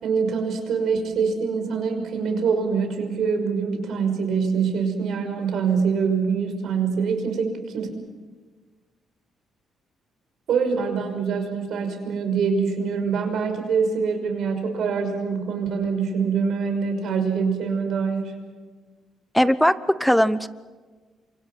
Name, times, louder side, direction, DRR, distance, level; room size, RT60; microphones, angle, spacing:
voice 1, 0.0-7.9 10.5-18.4, right 5 dB, 70° right, 5 dB, 5.9 m, -24 dB
voice 2, 19.3-20.5, equal, ahead, 14 dB, 1.0 m, -19 dB
28.5 x 24.5 x 6.2 m, 1.4 s
cardioid pair, 90°, 0 cm